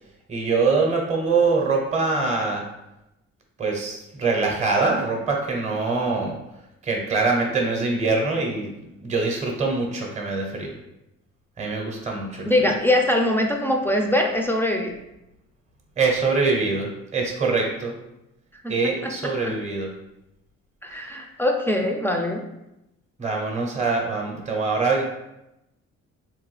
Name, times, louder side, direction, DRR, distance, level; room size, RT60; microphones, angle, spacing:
voice 1, 0.3-2.6 3.6-6.4 6.8-8.7 9.0-10.7 11.6-12.7 16.0-17.9 18.7-19.9 23.2-25.0, right 4 dB, 25° right, 0 dB, 0.6 m, -24 dB
voice 2, 12.5-15.0 18.6-19.5 20.8-22.4, left 1 dB, 10° left, 2 dB, 0.3 m, -23 dB
2.9 x 2.2 x 3.1 m, 0.90 s
cardioid pair, 90°, 30 cm